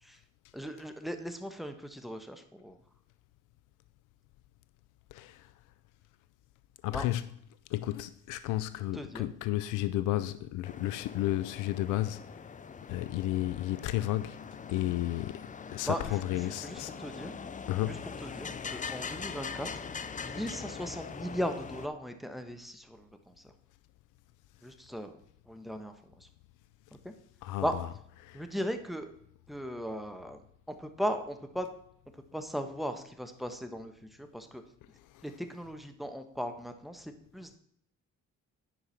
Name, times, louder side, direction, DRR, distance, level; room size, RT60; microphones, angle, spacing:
voice 1, 0.5-2.8 6.9-7.1 8.9-9.3 15.8-17.4 17.9-19.7 20.2-23.5 24.6-25.2 25.5-26.3 27.0-27.1 27.6-27.7 28.3-29.1 29.5-30.4 30.7-31.7 32.1-34.6 35.2-37.6, equal, ahead, 1.1 m, -38 dB
voice 2, 5.1-5.4 6.8-7.2 7.7-12.2 12.9-14.4 14.7-16.9 17.7-18.0 27.4-27.6 28.2-28.4, left 15 dB, 90° left, 0.5 m, -32 dB
sound 1, 10.6-21.9, left 6 dB, 25° left, 0.5 m, -42 dB
10.0 x 4.7 x 5.7 m
cardioid pair, 90°, 30 cm